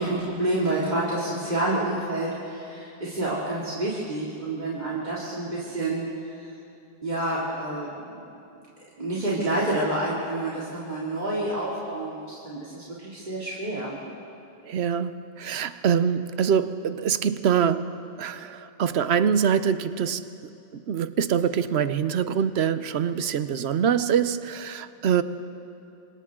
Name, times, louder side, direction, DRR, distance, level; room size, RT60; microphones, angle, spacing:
voice 1, 0.0-6.5 7.0-8.2 9.0-14.0, right 1 dB, 45° right, -8 dB, 3.0 m, -28 dB
voice 2, 14.7-20.3 20.9-25.2, right 7 dB, 85° right, 13 dB, 1.0 m, -24 dB
27.5 x 25.0 x 3.7 m, 2.7 s
omnidirectional pair, 1.1 m